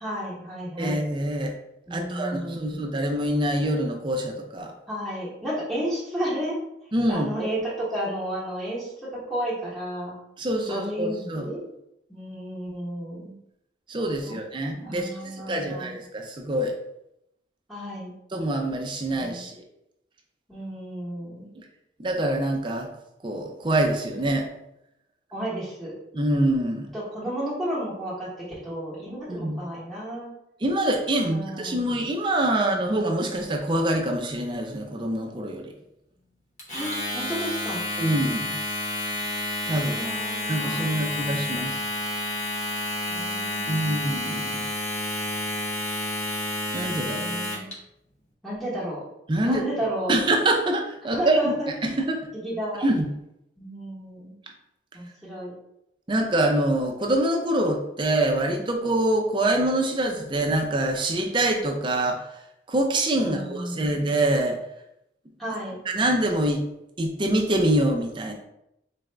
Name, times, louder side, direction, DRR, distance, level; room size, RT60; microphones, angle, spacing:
voice 1, 0.0-1.0 1.9-2.8 4.9-6.5 7.1-10.1 10.7-11.6 12.1-13.4 14.2-14.3 14.8-15.9 17.7-18.1 19.1-19.4 20.5-21.5 25.3-25.9 26.9-28.3 28.6-30.3 31.1-31.9 36.7-37.8 39.7-41.4 43.1-44.1 47.2-47.7 48.4-49.0 49.4-50.2 51.1-51.7 52.3-52.8 53.6-54.3 54.9-55.5 63.2-64.0 65.4-65.8, equal, ahead, -9 dB, 1.0 m, -32 dB
voice 2, 0.8-1.5 1.9-4.7 6.9-7.3 10.4-11.5 13.9-16.7 18.3-19.6 22.0-22.9 23.2-24.5 26.1-26.9 29.3-29.6 30.6-35.7 38.0-38.5 39.7-40.0 40.5-41.8 43.7-44.6 46.7-47.3 49.3-49.6 50.1-51.5 51.8-52.2 52.8-53.1 56.1-62.2 62.7-64.6 65.9-66.6 67.0-68.3, right 1 dB, 25° right, 2 dB, 0.5 m, -25 dB
Domestic sounds home sounds, 36.6-47.7, left 1 dB, 40° left, 1.0 m, -30 dB
4.0 x 2.4 x 3.3 m, 0.81 s
head